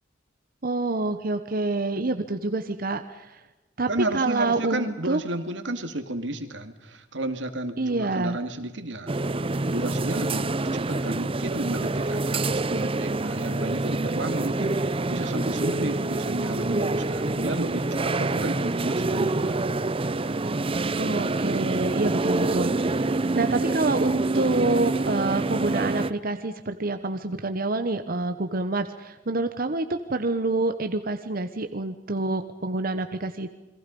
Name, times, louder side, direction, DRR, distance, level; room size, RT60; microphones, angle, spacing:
voice 1, 0.6-3.4 3.8-3.9 4.1-5.2 7.8-8.4 21.0-33.5, right 2 dB, 50° right, 8 dB, 1.0 m, -27 dB
voice 2, 3.9-9.1 9.7-19.6, right 1 dB, 90° right, 7 dB, 2.3 m, -32 dB
sound 1, 9.1-26.1, right 2 dB, 30° right, 0.7 m, -26 dB
28.0 x 23.0 x 5.4 m, 1.1 s
head